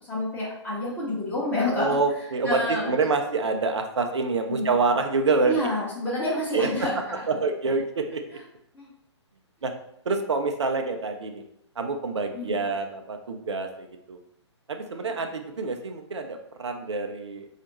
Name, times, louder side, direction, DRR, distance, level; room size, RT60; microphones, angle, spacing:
voice 1, 0.0-2.9 4.5-4.7 5.4-7.2 8.3-8.4 8.7-8.9 12.3-12.6 14.9-15.3, left 1 dB, 10° left, -7 dB, 0.7 m, -29 dB
voice 2, 1.7-5.5 6.5-6.9 7.3-8.4 9.6-9.7 10.1-11.4 11.8-14.2 14.7-17.5, right 3 dB, 70° right, 5 dB, 0.5 m, -27 dB
4.1 x 2.4 x 2.9 m, 0.77 s
figure-of-eight pair, 125°, 15 cm